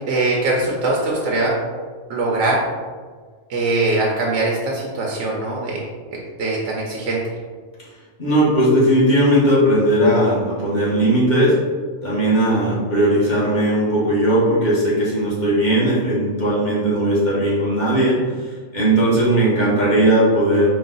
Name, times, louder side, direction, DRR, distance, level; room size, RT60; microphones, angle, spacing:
voice 1, 0.1-1.6 2.1-2.6 3.5-5.8 6.4-7.2 12.3-12.7, right 2 dB, 65° right, -3 dB, 0.9 m, -21 dB
voice 2, 8.2-11.6 12.0-18.2 18.7-20.7, right 1 dB, 35° left, -8 dB, 1.3 m, -17 dB
3.9 x 2.4 x 3.8 m, 1.5 s
omnidirectional pair, 1.4 m